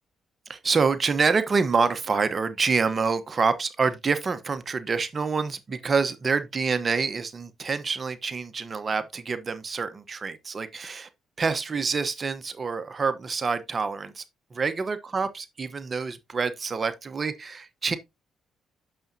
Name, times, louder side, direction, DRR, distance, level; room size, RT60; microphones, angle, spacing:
voice 1, 0.5-11.1 11.4-14.2 14.5-18.0, right 5 dB, 35° right, 1.0 m, -27 dB
8.9 x 6.8 x 2.7 m
cardioid pair, 90°, 0 cm